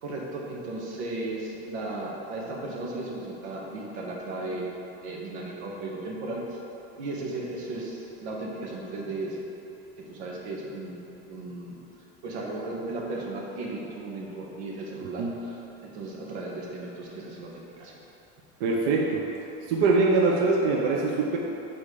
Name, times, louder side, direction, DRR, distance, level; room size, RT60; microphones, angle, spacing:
voice 1, 0.0-4.7 5.0-6.6 7.0-9.5 10.0-11.0 11.3-11.8 12.2-18.0, right 2 dB, 90° right, -3 dB, 1.5 m, -35 dB
voice 2, 18.6-19.3 19.7-21.4, right 3 dB, 50° right, -1 dB, 0.6 m, -23 dB
7.1 x 4.3 x 4.9 m, 3.0 s
cardioid pair, 180°, 32 cm